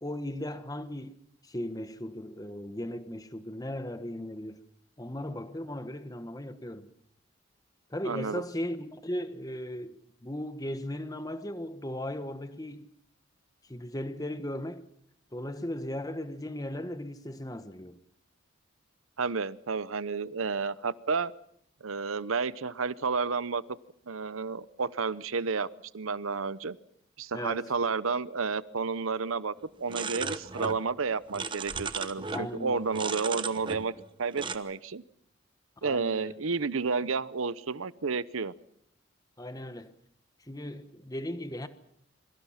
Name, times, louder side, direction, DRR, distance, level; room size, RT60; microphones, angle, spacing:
voice 1, 0.0-4.6 5.0-6.9 7.9-12.9 13.7-14.9 15.3-18.0 27.3-27.6 32.3-32.9 35.8-36.3 39.4-39.9 40.5-41.7, left 1 dB, 15° left, 1.2 m, -37 dB
voice 2, 8.0-8.4 19.2-21.3 21.8-23.6 24.1-25.7 25.9-26.8 27.2-33.9 34.2-35.0 35.8-38.5, right 4 dB, 80° right, 0.8 m, -31 dB
sound 1, 29.9-30.8 31.1-32.5 32.9-34.1 34.4-34.6, right 4 dB, 25° right, 1.0 m, -35 dB
27.0 x 24.0 x 5.8 m
head